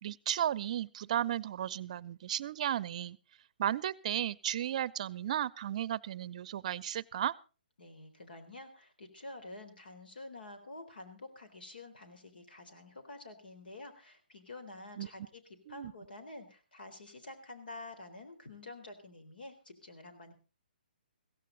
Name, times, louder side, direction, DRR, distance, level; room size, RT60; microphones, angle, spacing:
voice 1, 0.0-3.2 3.6-7.3 15.0-15.1 15.7-15.9, right 11 dB, 45° right, 22 dB, 0.6 m, -34 dB
voice 2, 7.8-15.4 15.7-20.3, left 2 dB, 75° left, 7 dB, 3.9 m, -49 dB
16.0 x 15.0 x 4.0 m, 0.34 s
hypercardioid pair, 145°, 5 cm